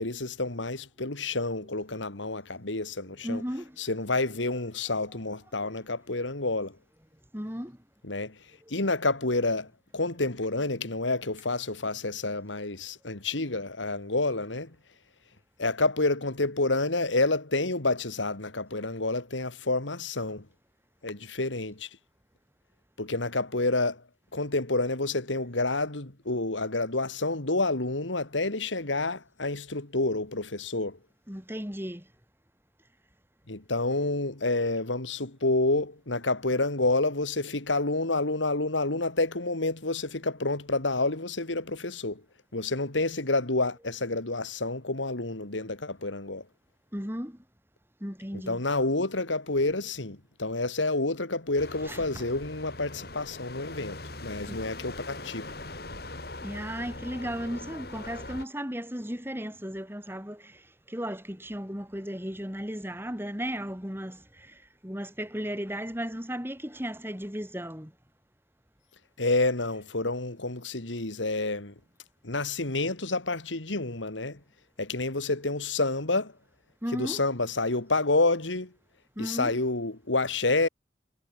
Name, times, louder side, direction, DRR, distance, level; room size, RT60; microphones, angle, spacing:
voice 1, 0.0-3.4 3.8-6.8 8.0-8.4 8.7-14.7 15.6-20.4 21.0-21.9 23.0-24.0 24.3-31.0 33.5-42.2 42.5-46.4 48.3-55.5 69.2-71.7 72.2-74.4 74.8-76.3 76.9-78.7 79.2-80.7, left 2 dB, 90° left, 2.7 m, -29 dB
voice 2, 3.2-3.8 5.6-5.7 7.3-7.8 31.3-32.1 46.9-47.4 48.0-48.6 51.9-52.2 54.5-54.6 56.4-67.9 76.8-77.2 79.2-79.6, equal, 10° right, 6.6 m, -35 dB
sound 1, 51.6-58.5, left 2 dB, 55° left, 3.7 m, -41 dB
head